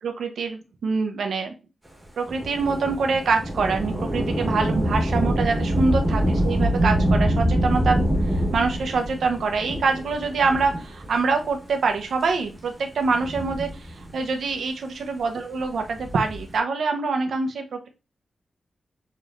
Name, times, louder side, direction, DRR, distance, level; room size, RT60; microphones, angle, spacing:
voice 1, 0.0-1.5 2.2-8.1 8.5-17.9, right 4 dB, 80° right, 5 dB, 0.7 m, -25 dB
Thunder / Rain, 2.3-11.2 12.0-12.1 13.0-14.3 15.8-16.6, equal, 10° right, 1.2 m, -25 dB
6.7 x 3.1 x 2.5 m, 0.31 s
wide cardioid pair, 160°, 0 cm